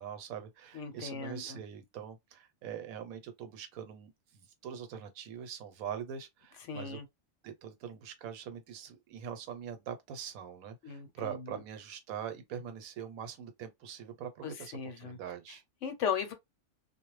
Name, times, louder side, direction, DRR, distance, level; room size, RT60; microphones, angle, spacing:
voice 1, 0.0-7.0 7.4-15.6, right 8 dB, 85° right, 1.1 m, -43 dB
voice 2, 0.7-1.6 6.7-7.0 10.8-11.6 14.4-15.2 15.8-16.3, left 7 dB, 70° left, 0.9 m, -37 dB
2.3 x 2.0 x 3.0 m
omnidirectional pair, 1.4 m